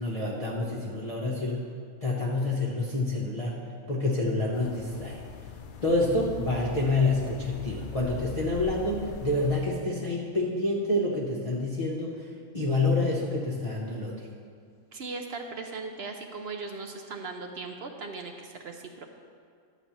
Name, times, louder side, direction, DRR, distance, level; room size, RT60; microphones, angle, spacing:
voice 1, 0.0-1.6 2.0-3.6 3.9-5.2 5.8-12.3 12.5-14.2, left 2 dB, 30° left, -5 dB, 0.8 m, -28 dB
sound 1, 4.5-9.7, left 8 dB, 70° left, 0.4 m, -41 dB
voice 2, 14.9-19.1, right 4 dB, 60° right, 4 dB, 0.7 m, -38 dB
11.0 x 4.1 x 7.3 m, 2.2 s
omnidirectional pair, 1.5 m